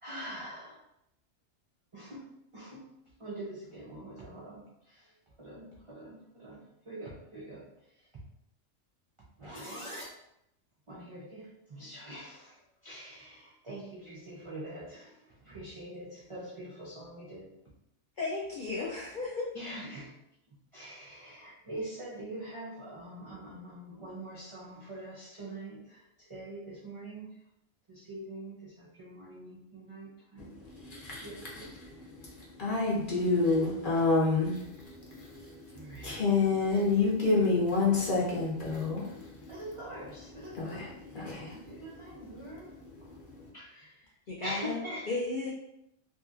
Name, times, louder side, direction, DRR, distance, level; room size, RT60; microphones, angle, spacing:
voice 1, 0.0-0.8 1.9-5.1 5.4-7.7 9.4-10.1 10.9-17.5 19.5-20.1 20.7-27.3 27.9-30.5 31.2-31.7 35.7-36.2 39.5-42.8 43.5-44.0 44.4-45.1, right 1 dB, 55° right, -6 dB, 0.3 m, -44 dB
voice 2, 18.2-19.5 44.3-44.8 45.1-45.5, left 3 dB, 65° left, -3 dB, 0.4 m, -34 dB
voice 3, 30.7-31.3 31.5-39.5 40.5-41.8 42.8-43.5, left 3 dB, 45° left, -4 dB, 0.8 m, -29 dB
2.7 x 2.7 x 2.4 m, 0.80 s
omnidirectional pair, 1.3 m